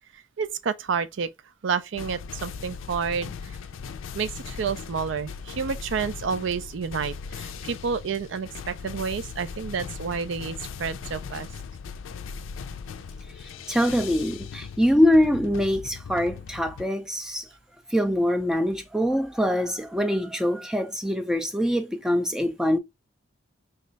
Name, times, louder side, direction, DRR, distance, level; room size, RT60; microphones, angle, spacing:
voice 1, 0.1-1.3 1.6-3.6 4.1-11.5, right 6 dB, 70° right, 0.4 m, -30 dB
sound 1, 1.9-16.8, left 6 dB, 85° left, 0.4 m, -38 dB
voice 2, 13.4-17.5 17.9-22.8, equal, 5° right, 0.3 m, -24 dB
3.1 x 2.4 x 3.9 m
head